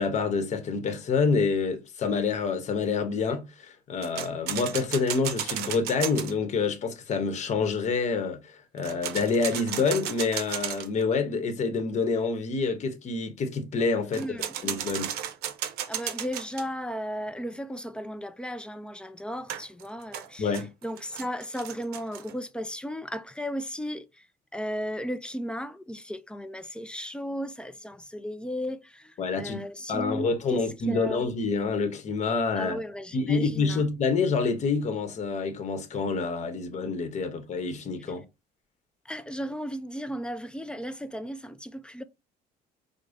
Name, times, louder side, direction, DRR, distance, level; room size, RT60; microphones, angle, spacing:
voice 1, 0.0-14.4 14.6-15.1 20.4-20.7 29.2-29.6 29.9-32.8 33.1-38.2, left 4 dB, 45° left, 0.9 m, -27 dB
sound 1, 4.0-6.3 8.8-11.0 14.1-16.7 19.5-22.3, right 10 dB, 75° right, 0.6 m, -34 dB
voice 2, 14.1-14.5 15.9-20.6 20.8-24.2 24.5-31.3 32.5-33.8 39.1-42.0, equal, 5° left, 0.3 m, -35 dB
4.8 x 2.1 x 2.5 m
cardioid pair, 110°, 17 cm